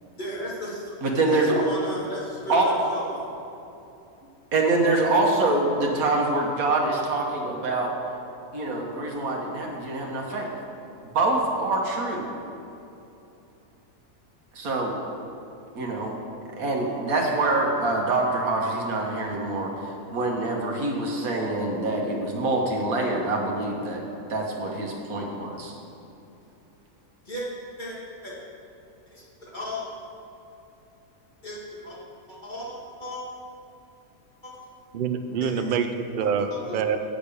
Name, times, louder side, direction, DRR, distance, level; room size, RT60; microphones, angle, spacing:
voice 1, 0.1-0.9 1.3-3.3 27.2-27.5 27.8-28.3 29.1-29.9 31.4-32.0 32.3-33.2 34.4-34.6 35.4-35.5 36.2-36.6, equal, 35° left, -6 dB, 1.9 m, -35 dB
voice 2, 1.0-1.5 2.5-2.7 4.5-7.9 8.5-10.5 11.1-12.3 14.5-15.0 15.7-16.2 16.5-19.7 20.1-24.0 24.3-25.7, right 2 dB, 90° right, -1 dB, 1.5 m, -25 dB
voice 3, 34.9-37.0, right 6 dB, 65° right, 7 dB, 0.5 m, -26 dB
8.5 x 5.1 x 6.9 m, 2.8 s
omnidirectional pair, 1.5 m